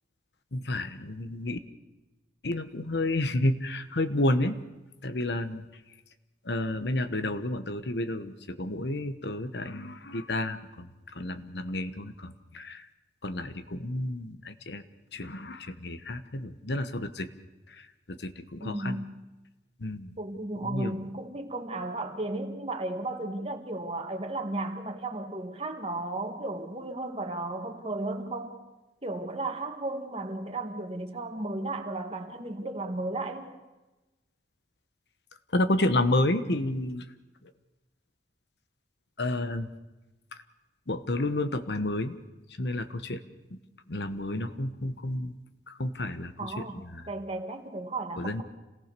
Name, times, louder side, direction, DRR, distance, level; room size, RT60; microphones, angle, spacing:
voice 1, 0.5-1.6 2.4-4.6 5.0-5.6 6.4-12.9 13.2-14.8 15.1-17.3 17.7-19.0 19.8-20.1 20.6-21.0 35.5-37.1 37.4-37.5 39.2-39.7 40.3-40.4 40.9-42.2 42.6-43.2 43.5-43.6 43.9-45.3 45.7-47.1 48.2-48.4, left 1 dB, 65° left, 10 dB, 1.1 m, -31 dB
voice 2, 18.6-19.1 20.2-28.5 29.0-33.5 46.4-48.4, right 2 dB, 35° right, 5 dB, 1.9 m, -34 dB
27.0 x 18.0 x 6.8 m, 1.1 s
head